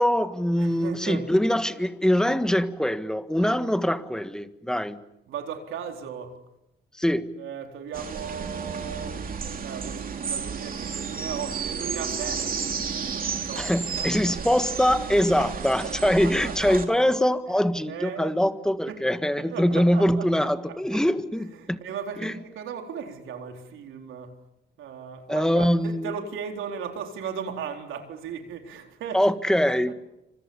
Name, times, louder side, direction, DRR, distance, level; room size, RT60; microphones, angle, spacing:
voice 1, 0.0-5.0 7.0-7.3 13.6-21.8 22.2-22.3 25.3-26.1 29.1-29.9, equal, 5° left, 1.6 m, -23 dB
voice 2, 0.6-1.3 5.3-6.4 7.4-9.3 9.6-12.6 13.4-14.4 15.1-15.5 15.8-16.8 17.9-18.3 18.9-19.0 19.4-20.5 20.9-21.0 21.3-24.4 24.8-29.3 29.9-30.0, right 7 dB, 80° right, 4.1 m, -37 dB
sound 1, 7.9-16.9, right 6 dB, 45° right, 2.9 m, -32 dB
27.5 x 26.0 x 7.2 m
cardioid pair, 90°, 20 cm